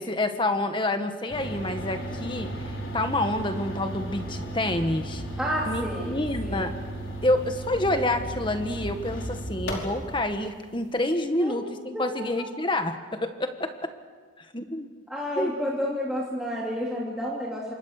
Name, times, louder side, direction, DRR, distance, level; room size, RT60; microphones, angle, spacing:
voice 1, 0.0-5.2 5.7-6.7 7.2-13.9 14.4-14.9 15.4-15.5, left 1 dB, 25° left, 7 dB, 1.7 m, -28 dB
sound 1, 1.3-10.2, right 1 dB, 70° left, 5.2 m, -35 dB
voice 2, 5.4-6.2 6.4-6.7 11.3-11.6 11.9-12.0 15.1-17.7, equal, 5° right, -5 dB, 3.1 m, -30 dB
28.0 x 25.0 x 6.7 m, 1.5 s
head